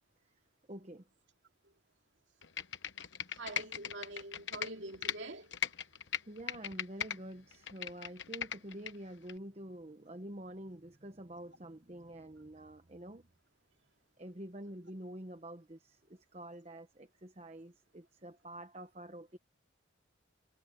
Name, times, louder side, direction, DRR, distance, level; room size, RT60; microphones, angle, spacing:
voice 1, 0.7-1.1 6.3-13.3 14.2-19.4, right 1 dB, 30° right, 1.1 m, -47 dB
Computer keyboard, 2.4-5.2 5.5-7.2 7.5-8.9 9.3-9.4, left 8 dB, 60° left, 1.1 m, -38 dB
voice 2, 3.3-5.5, right 2 dB, 65° right, 2.6 m, -45 dB
head